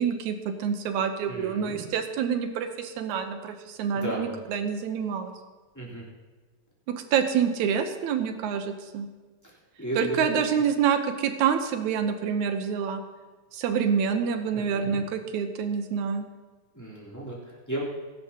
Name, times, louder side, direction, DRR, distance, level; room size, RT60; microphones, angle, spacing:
voice 1, 0.0-5.3 6.9-9.1 10.0-13.0 13.5-16.3, right 7 dB, 80° right, 7 dB, 2.3 m, -27 dB
voice 2, 1.3-1.8 3.9-4.3 5.7-6.0 9.4-10.4 14.5-15.0 16.7-17.9, right 1 dB, 5° left, -6 dB, 3.2 m, -34 dB
21.5 x 11.0 x 2.9 m, 1.3 s
omnidirectional pair, 3.4 m